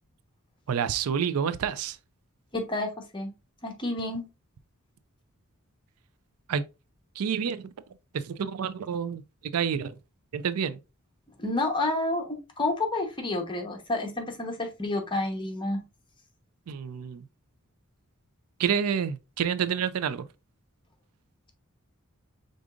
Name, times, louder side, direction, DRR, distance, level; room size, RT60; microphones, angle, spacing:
voice 1, 0.7-2.0 6.5-6.6 7.2-7.7 8.1-9.2 9.5-9.9 10.3-10.8 16.7-17.2 18.6-20.3, right 7 dB, 80° right, 0.4 m, -28 dB
voice 2, 2.5-3.3 3.6-4.2 11.4-15.8, left 2 dB, 20° left, 1.0 m, -29 dB
5.0 x 3.8 x 2.4 m
head